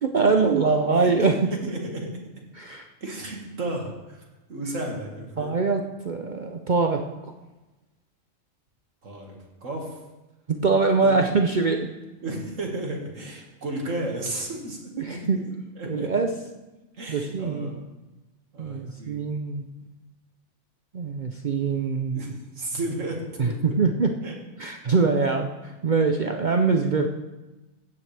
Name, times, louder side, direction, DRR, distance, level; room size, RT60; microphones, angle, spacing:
voice 1, 0.0-1.5 2.5-2.9 5.4-7.0 10.5-11.9 15.0-15.4 15.9-16.3 17.1-17.7 18.6-19.6 20.9-22.2 23.4-24.2 24.6-27.1, right 4 dB, 45° right, 4 dB, 0.6 m, -23 dB
voice 2, 0.9-2.2 3.0-4.2 4.5-5.6 9.0-9.9 11.0-11.1 12.2-16.1 17.0-17.8 18.5-19.3 22.1-23.6 24.2-24.4, right 1 dB, 75° right, 0 dB, 2.3 m, -33 dB
15.5 x 9.4 x 3.4 m, 1.1 s
omnidirectional pair, 1.3 m